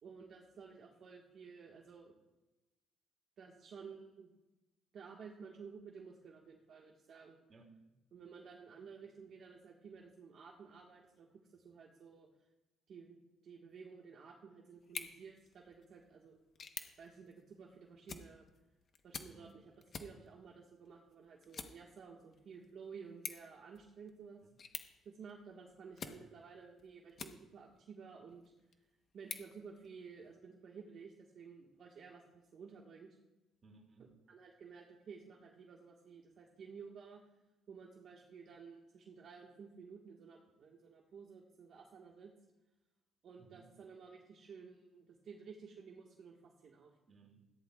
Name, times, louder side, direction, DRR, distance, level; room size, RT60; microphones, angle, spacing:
voice 1, 0.0-2.2 3.4-4.3 4.9-7.4 8.1-12.3 12.9-16.4 17.0-18.5 19.0-19.7 20.0-24.4 25.0-28.4 29.1-33.2 34.3-37.2 37.7-42.3 43.2-46.9, right 5 dB, 55° right, -1 dB, 1.5 m, -54 dB
sound 1, 14.8-27.8 28.3-30.3, left 5 dB, 40° left, 1.0 m, -52 dB
voice 2, 19.3-19.6 24.4-24.6 33.6-34.2 43.3-43.8 47.1-47.5, right 4 dB, 35° right, 1 dB, 2.4 m, -62 dB
17.0 x 14.5 x 2.4 m, 1.1 s
cardioid pair, 140°, 0 cm